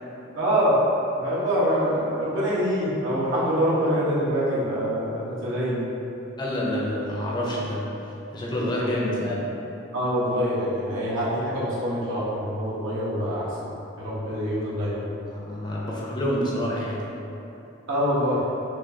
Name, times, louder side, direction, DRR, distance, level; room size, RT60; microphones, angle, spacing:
voice 1, 0.3-0.7 1.1-5.9 9.9-13.7 14.0-15.0 17.9-18.4, equal, 80° right, -8 dB, 1.1 m, -25 dB
voice 2, 6.4-7.9 8.3-9.4 15.3-17.0, equal, 25° left, -4 dB, 0.6 m, -27 dB
6.1 x 2.4 x 2.7 m, 2.9 s
head